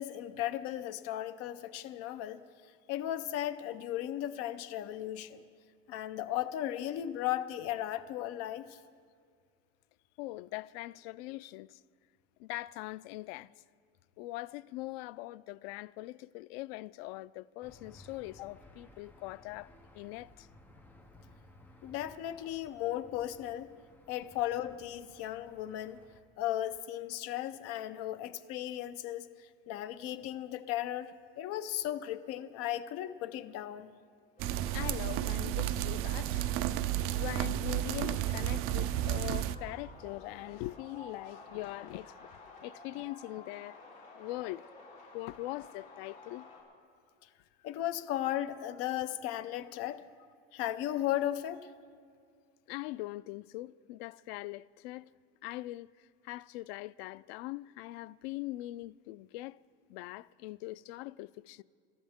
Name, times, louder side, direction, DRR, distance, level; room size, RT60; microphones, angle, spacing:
voice 1, 0.0-2.4 2.9-5.4 5.9-8.7 21.8-23.7 24.1-26.0 26.4-29.3 29.7-31.1 31.4-33.9 47.6-50.0 50.5-51.7, left 12 dB, 55° left, 0.8 m, -36 dB
voice 2, 10.2-11.8 12.4-13.5 14.2-20.5 22.4-22.5 24.2-24.4 34.7-36.4 37.1-42.3 42.6-43.8 44.2-44.6 45.1-46.4 52.7-55.1 55.4-55.9 56.2-59.6 59.9-61.6, left 18 dB, 90° left, 0.4 m, -42 dB
Aircraft / Engine, 17.6-26.2, left 1 dB, 5° left, 1.0 m, -58 dB
sound 1, 34.4-46.6, left 3 dB, 30° left, 3.9 m, -53 dB
sound 2, 34.4-39.6, right 13 dB, 50° right, 0.5 m, -32 dB
24.5 x 13.0 x 3.6 m
cardioid pair, 160°, 29 cm